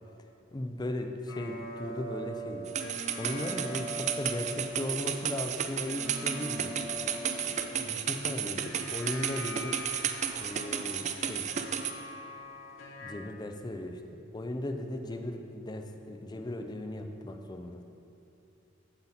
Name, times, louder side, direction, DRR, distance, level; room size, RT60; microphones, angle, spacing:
voice 1, 0.5-2.7 3.2-6.9 7.7-9.8 10.4-11.5 13.0-13.9 14.3-17.8, left 1 dB, 20° left, 6 dB, 0.5 m, -37 dB
sound 1, 1.3-13.1, equal, 70° left, 1.0 m, -42 dB
sound 2, 2.7-11.9, right 8 dB, 35° right, 0.4 m, -33 dB
8.0 x 7.4 x 4.2 m, 2.7 s
head